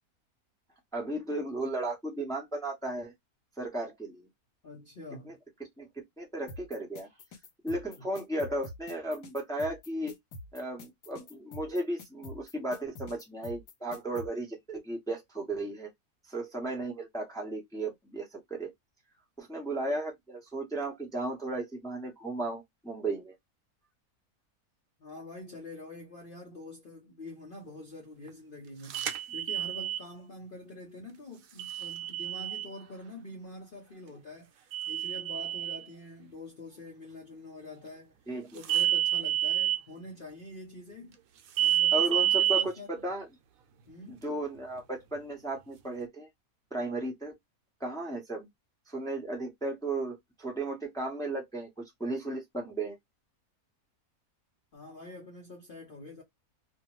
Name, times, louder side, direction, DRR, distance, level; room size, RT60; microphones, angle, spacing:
voice 1, 0.9-3.1 3.6-4.3 5.2-5.3 5.8-5.9 6.2-7.1 7.6-10.1 10.5-15.9 16.3-18.7 19.4-23.3 38.3-38.6 41.9-43.3 44.1-46.3 46.7-47.4 47.8-48.5 48.9-53.0, right 2 dB, 5° left, 0.7 m, -35 dB
voice 2, 4.6-5.4 25.0-38.1 38.5-41.2 41.6-43.1 43.9-44.3 54.7-56.2, left 2 dB, 45° left, 0.8 m, -46 dB
sound 1, 6.5-14.3, left 1 dB, 85° left, 1.3 m, -45 dB
sound 2, 28.9-30.0 31.6-32.7 34.7-35.8 38.6-39.8 41.6-42.6, right 11 dB, 70° right, 1.0 m, -28 dB
2.5 x 2.4 x 2.9 m
omnidirectional pair, 1.6 m